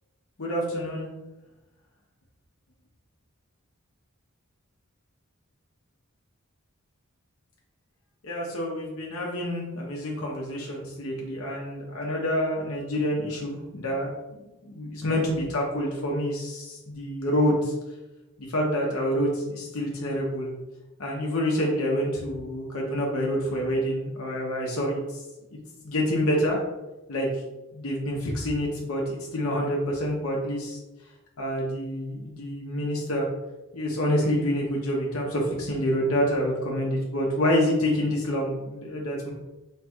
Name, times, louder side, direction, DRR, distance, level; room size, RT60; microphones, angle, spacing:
voice 1, 0.4-1.1 8.2-14.1 14.6-17.7 18.4-20.5 21.0-25.2 25.8-26.6 27.1-27.3 27.7-30.8 31.4-33.3 33.7-39.3, equal, 75° left, -2 dB, 0.8 m, -27 dB
4.4 x 3.1 x 2.3 m, 1.0 s
head